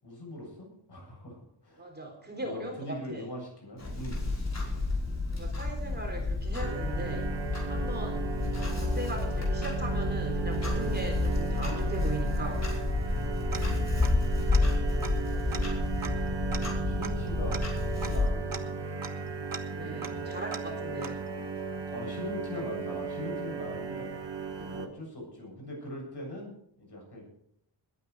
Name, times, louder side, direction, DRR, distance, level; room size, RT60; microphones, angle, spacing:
voice 1, 0.0-1.9 2.4-4.2 14.3-17.6 18.0-18.8 19.8-20.3 21.9-24.1 24.7-26.5 26.8-27.2, left 1 dB, 55° left, -1 dB, 7.8 m, -42 dB
voice 2, 1.8-3.2 3.9-4.0 5.3-7.3 7.7-8.3 8.5-12.7 19.7-21.2 24.5-24.8, right 1 dB, 20° right, 1 dB, 3.7 m, -39 dB
Clock, 3.8-18.3, left 2 dB, 35° left, 5.3 m, -30 dB
sound 1, 6.6-24.9, right 5 dB, 60° right, 1.8 m, -36 dB
Tick-tock, 13.5-14.3 14.5-14.6 15.0-21.5, right 5 dB, 45° right, 1.4 m, -43 dB
21.0 x 9.5 x 4.8 m, 0.73 s
wide cardioid pair, 120°, 47 cm